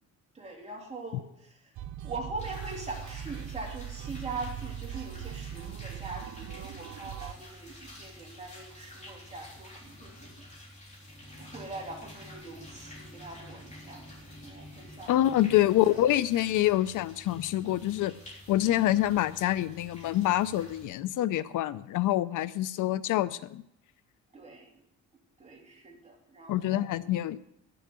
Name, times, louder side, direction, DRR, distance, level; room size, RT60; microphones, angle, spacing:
voice 1, 0.3-1.7 2.0-10.4 11.4-14.1 14.4-15.2 24.3-24.7 25.4-27.1, right 3 dB, 20° right, -1 dB, 2.8 m, -42 dB
sound 1, 1.8-7.3, right 10 dB, 65° right, 0.6 m, -40 dB
sound 2, 2.4-20.9, left 1 dB, 25° left, 3.4 m, -49 dB
voice 2, 15.1-18.1 18.5-23.6 26.5-27.4, left 13 dB, 75° left, 17 dB, 0.5 m, -26 dB
11.0 x 7.0 x 7.5 m, 0.81 s
cardioid pair, 120°, 31 cm